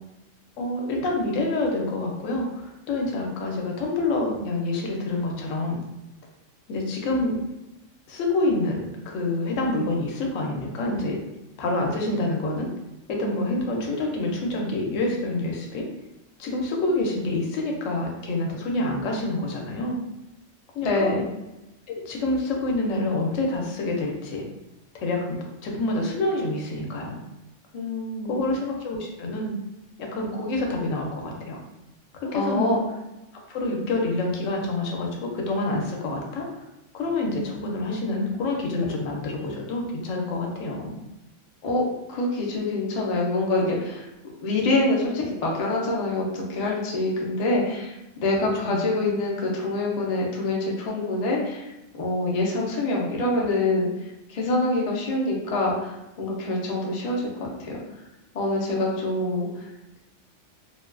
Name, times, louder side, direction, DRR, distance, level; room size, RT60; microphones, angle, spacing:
voice 1, 0.6-5.8 6.7-7.3 8.1-11.2 11.6-12.7 13.1-15.9 16.4-20.0 20.7-21.1 21.9-24.5 24.9-27.2 28.3-29.5 30.0-31.6 32.3-32.8 33.5-36.5 36.9-41.0 48.6-48.8, left 2 dB, 80° left, 1 dB, 0.9 m, -27 dB
voice 2, 20.8-21.3 27.7-28.4 32.3-32.8 41.6-41.8 42.1-44.1 44.4-47.9 48.2-51.7 52.0-53.9 54.3-57.8 58.3-59.7, left 2 dB, 60° left, -2 dB, 0.4 m, -25 dB
2.4 x 2.2 x 2.3 m, 0.96 s
omnidirectional pair, 1.3 m